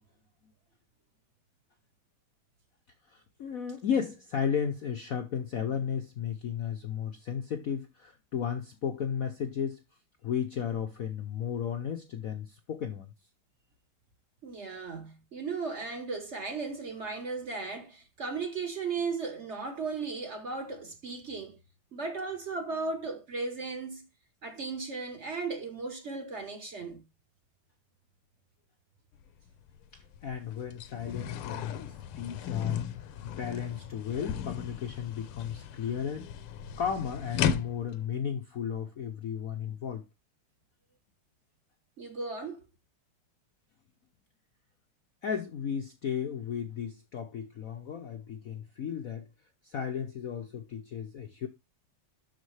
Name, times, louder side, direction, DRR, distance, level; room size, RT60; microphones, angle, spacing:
voice 1, 3.1-9.8 10.2-13.1 29.9-32.9 33.2-36.3 36.8-40.0 45.2-49.2 49.6-51.5, left 7 dB, 65° left, 0.8 m, -34 dB
voice 2, 14.4-21.6 21.9-24.0 24.4-27.0 42.0-42.6, right 4 dB, 40° right, 1.1 m, -36 dB
sound 1, 29.2-29.3 29.7-38.0, left 8 dB, 85° left, 1.6 m, -36 dB
12.0 x 4.1 x 3.2 m
omnidirectional pair, 2.3 m